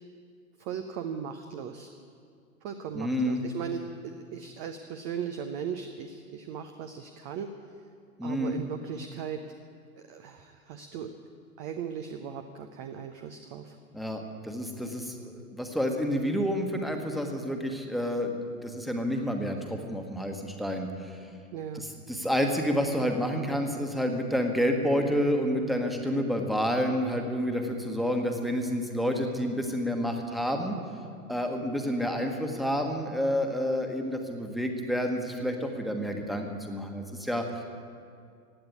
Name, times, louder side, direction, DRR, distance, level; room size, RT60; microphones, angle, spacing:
voice 1, 0.6-1.9 2.6-7.5 8.2-9.4 10.1-11.1 11.6-13.8 21.5-21.8, right 7 dB, 20° right, 7 dB, 0.5 m, -38 dB
voice 2, 2.9-3.4 8.2-8.6 13.9-21.3 21.7-30.8 31.3-37.4, equal, ahead, 3 dB, 1.3 m, -29 dB
16.5 x 9.5 x 8.5 m, 2.2 s
figure-of-eight pair, 100°, 44 cm